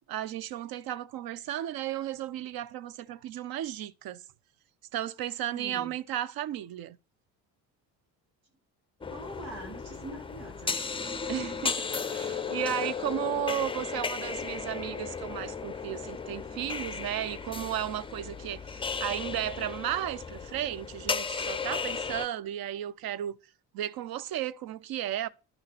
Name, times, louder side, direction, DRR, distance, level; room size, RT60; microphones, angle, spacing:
voice 1, 0.1-4.2 4.9-7.0 11.3-23.4 23.7-25.3, right 12 dB, 50° right, 0.6 m, -34 dB
voice 2, 5.5-5.9 9.1-10.8, right 1 dB, 90° right, 2.2 m, -43 dB
sound 1, 9.0-22.3, left 5 dB, 10° left, 0.5 m, -35 dB
11.5 x 5.5 x 3.4 m
hypercardioid pair, 50°, 49 cm